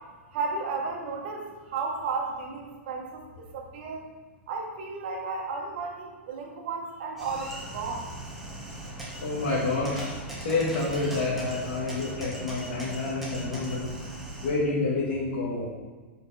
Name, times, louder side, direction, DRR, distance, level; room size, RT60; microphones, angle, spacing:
voice 1, 0.3-4.1 4.5-8.1, right 4 dB, 55° right, 1 dB, 1.3 m, -33 dB
sound 1, 7.2-14.5, right 1 dB, 5° right, 1.4 m, -39 dB
voice 2, 9.2-10.1 10.4-13.9 14.4-15.7, left 3 dB, 70° left, -7 dB, 1.9 m, -28 dB
6.2 x 5.3 x 4.2 m, 1.4 s
hypercardioid pair, 155°, 7 cm